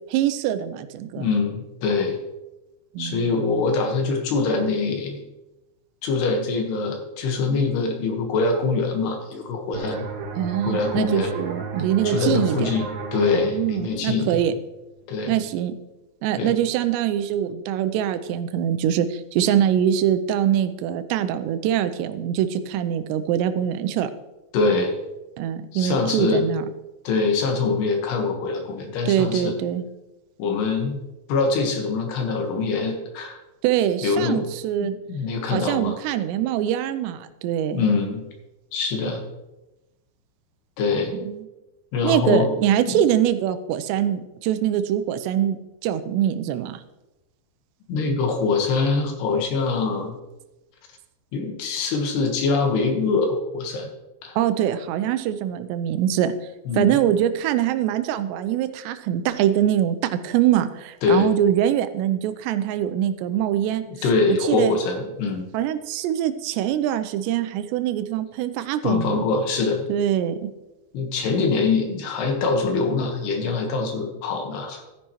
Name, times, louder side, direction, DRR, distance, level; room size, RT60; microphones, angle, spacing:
voice 1, 0.1-1.3 2.9-3.3 10.4-12.7 13.3-14.5 15.3-15.7 16.2-24.1 25.4-26.7 29.1-29.8 33.6-34.9 35.5-37.8 41.1-41.5 42.0-46.8 54.4-56.3 56.7-63.8 64.3-64.8 65.5-69.2 69.9-70.5, right 10 dB, 80° right, 11 dB, 2.8 m, -23 dB
voice 2, 1.2-2.2 3.0-5.2 6.0-10.1 10.6-11.3 12.0-14.4 15.1-15.3 16.4-16.5 24.5-25.0 25.7-26.4 27.0-29.6 30.4-31.0 31.3-33.4 34.0-34.4 34.8-36.0 37.7-38.3 38.7-39.2 40.8-41.1 41.9-42.5 42.9-43.0 47.9-50.2 51.3-53.9 54.2-54.4 56.7-56.9 61.0-61.3 63.9-65.5 68.8-69.8 70.9-74.8, left 4 dB, 70° left, 3 dB, 3.3 m, -24 dB
sound 1, 9.7-15.1, right 5 dB, 65° right, 2.9 m, -34 dB
13.0 x 10.0 x 3.0 m, 1.0 s
omnidirectional pair, 5.2 m